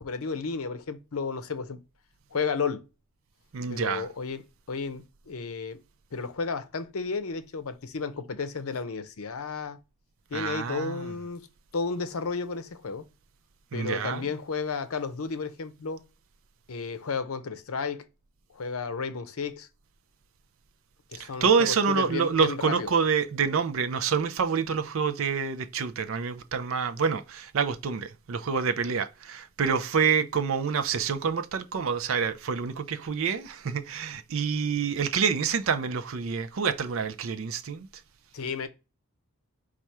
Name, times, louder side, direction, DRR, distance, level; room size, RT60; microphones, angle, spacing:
voice 1, 0.0-1.8 2.3-2.9 3.7-5.8 6.1-9.8 10.3-11.5 11.7-13.1 13.7-16.0 16.7-18.1 18.5-19.7 21.1-22.9 38.3-38.7, left 5 dB, 80° left, 0.6 m, -33 dB
voice 2, 3.5-4.1 10.3-11.1 13.7-14.2 21.2-37.9, right 6 dB, 70° right, 0.5 m, -27 dB
4.2 x 2.4 x 4.6 m
head